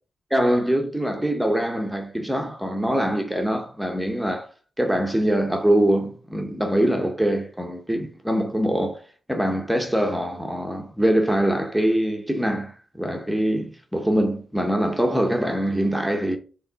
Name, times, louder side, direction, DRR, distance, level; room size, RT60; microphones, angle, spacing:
voice 1, 0.3-4.5 4.8-9.0 9.3-16.4, right 1 dB, ahead, 0.7 m, -23 dB
4.8 x 3.6 x 5.4 m
wide cardioid pair, 170°, 0 cm